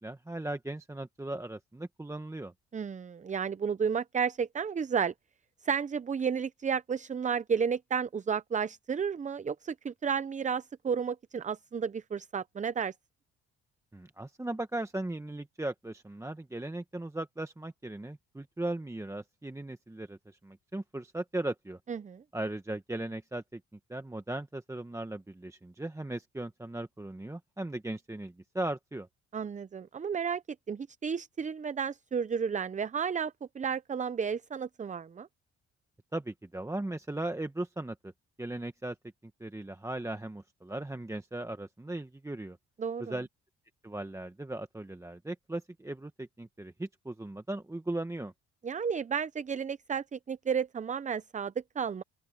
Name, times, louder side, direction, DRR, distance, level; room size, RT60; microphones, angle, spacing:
voice 1, 0.0-2.5 13.9-21.8 22.3-23.6 23.9-29.1 36.1-38.1 38.4-39.0 39.2-42.6 43.0-43.3 43.8-48.3, right 2 dB, 10° right, 1.1 m, -38 dB
voice 2, 2.7-5.1 5.6-12.9 21.9-22.2 29.3-30.4 30.7-35.3 42.8-43.2 48.6-52.0, right 6 dB, 25° right, 0.6 m, -32 dB
open air
cardioid pair, 90°, 30 cm